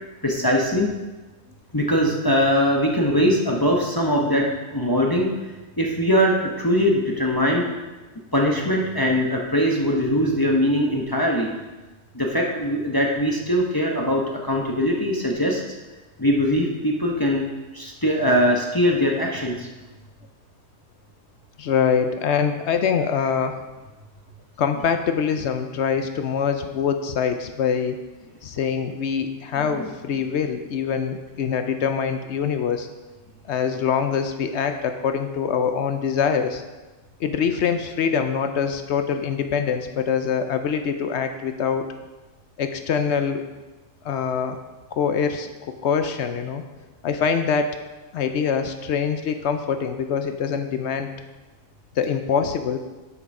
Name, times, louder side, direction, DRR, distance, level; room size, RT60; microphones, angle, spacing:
voice 1, 0.2-0.9 1.7-4.4 4.7-5.3 5.8-7.6 8.3-11.5 12.1-15.6 16.2-17.4 17.7-19.7, equal, 20° left, -1 dB, 0.6 m, -21 dB
voice 2, 21.6-23.6 24.6-28.0 28.4-32.9 33.5-36.6 37.2-41.9 42.6-43.4 44.0-44.6 44.9-45.5 45.8-46.6 47.0-47.8 48.1-51.1 52.0-52.8, left 6 dB, 70° left, 7 dB, 0.6 m, -24 dB
7.8 x 6.1 x 5.3 m, 1.2 s
omnidirectional pair, 1.7 m